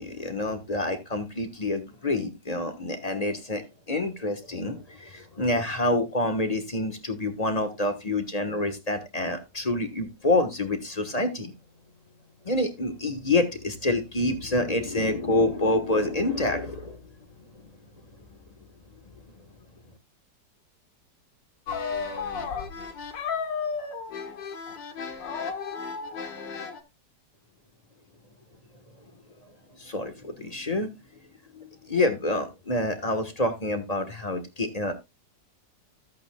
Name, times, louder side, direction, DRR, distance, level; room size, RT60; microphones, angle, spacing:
voice 1, 0.0-11.5 12.4-17.0 29.8-30.9 31.5-34.9, left 2 dB, 25° left, 7 dB, 1.3 m, -27 dB
sound 1, 21.7-26.8, left 5 dB, 90° left, 2.0 m, -33 dB
14.0 x 8.4 x 2.3 m, 0.22 s
omnidirectional pair, 1.9 m